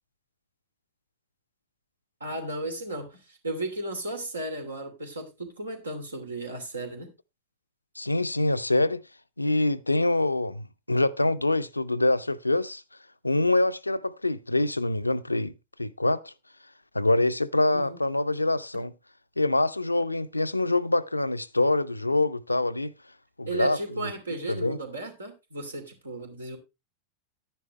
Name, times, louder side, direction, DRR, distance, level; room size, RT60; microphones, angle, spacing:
voice 1, 2.2-7.1 17.7-18.0 23.5-26.6, right 2 dB, 75° right, 2.8 m, -35 dB
voice 2, 8.0-9.0 9.4-12.8 13.2-15.5 15.8-16.3 16.9-18.9 19.4-22.9 23.4-23.8 24.5-24.8, left 2 dB, 85° left, 0.5 m, -25 dB
11.0 x 10.0 x 3.1 m
figure-of-eight pair, 90°, 0 cm